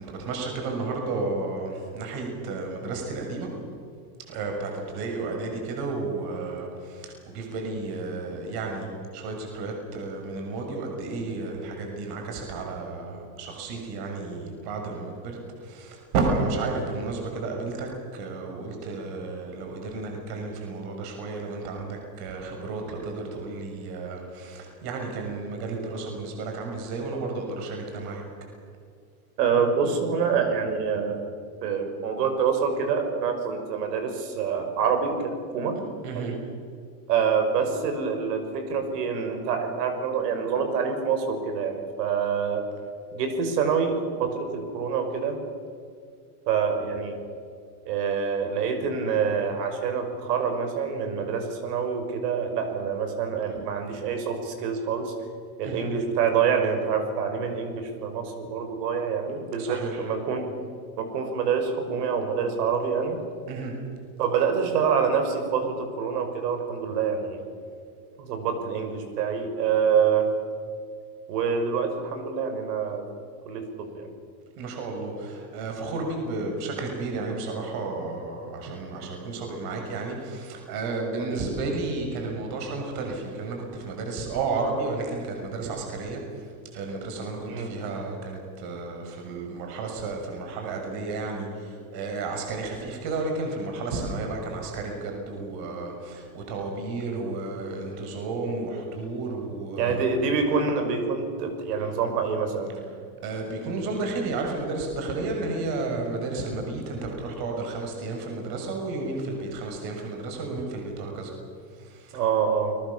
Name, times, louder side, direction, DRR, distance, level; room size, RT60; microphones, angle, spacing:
voice 1, 0.0-3.5 4.2-8.9 9.1-28.2 36.0-36.3 55.6-55.9 59.6-60.0 63.5-63.7 74.6-86.5 86.7-100.0 103.2-111.3 111.8-112.2, right 3 dB, 45° right, 2 dB, 6.7 m, -32 dB
voice 2, 29.4-31.2 31.6-35.7 36.1-36.4 37.1-42.6 43.1-45.4 46.5-47.2 47.9-55.1 55.6-60.5 61.0-63.2 64.2-67.5 68.2-70.3 71.3-73.1 73.5-74.1 81.2-81.4 87.5-87.8 99.8-102.8 112.1-112.8, right 6 dB, 70° right, 6 dB, 6.1 m, -26 dB
29.0 x 22.0 x 7.2 m, 2.2 s
supercardioid pair, 145°, 50 cm